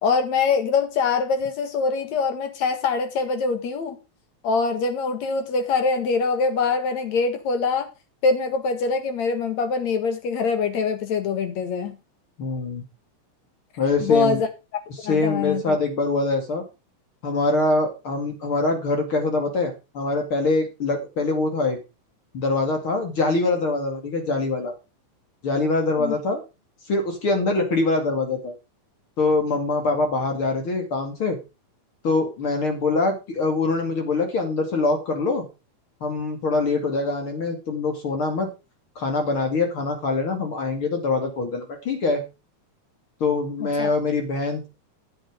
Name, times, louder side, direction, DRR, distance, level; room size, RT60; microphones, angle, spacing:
voice 1, 0.0-4.0 4.4-7.9 8.2-12.0 14.0-14.5 15.0-15.8 26.0-26.1 43.6-43.9, left 4 dB, 70° left, 8 dB, 3.0 m, -24 dB
voice 2, 12.4-12.8 13.8-14.4 14.9-16.6 17.2-21.8 22.3-24.7 25.4-26.4 26.9-28.5 29.2-31.4 32.0-35.4 36.0-38.5 39.0-42.2 43.2-44.7, left 3 dB, 50° left, 4 dB, 2.9 m, -24 dB
10.5 x 7.8 x 5.0 m, 0.28 s
omnidirectional pair, 3.3 m